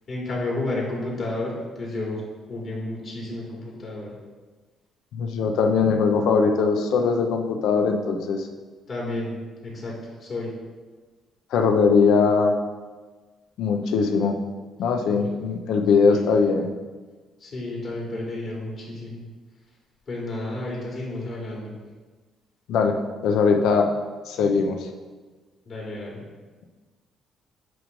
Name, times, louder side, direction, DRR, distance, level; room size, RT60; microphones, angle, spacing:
voice 1, 0.1-2.2 2.5-4.2 8.9-9.3 9.6-10.5 15.2-15.3 16.1-16.2 17.4-19.2 20.1-21.8 25.6-26.2, left 2 dB, 45° left, -5 dB, 2.4 m, -31 dB
voice 2, 5.1-8.5 11.5-12.6 13.6-14.4 14.8-16.7 22.7-23.0 23.2-23.9 24.3-24.9, left 5 dB, 80° left, 4 dB, 0.8 m, -20 dB
9.4 x 3.2 x 5.2 m, 1.3 s
cardioid pair, 140°, 0 cm